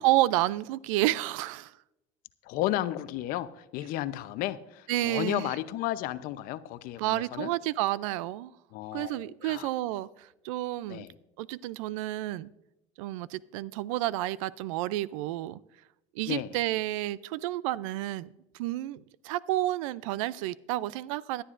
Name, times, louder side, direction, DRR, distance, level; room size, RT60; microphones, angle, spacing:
voice 1, 0.0-1.7 4.9-5.5 7.0-8.5 8.9-11.0 11.4-12.5 13.0-15.6 16.2-18.3 18.6-21.4, right 16 dB, 85° right, 0.4 m, -30 dB
voice 2, 2.4-7.5 8.7-9.7 10.9-11.2 16.3-16.5, left 14 dB, 65° left, 0.7 m, -33 dB
17.5 x 11.5 x 2.5 m
supercardioid pair, 110°, 16 cm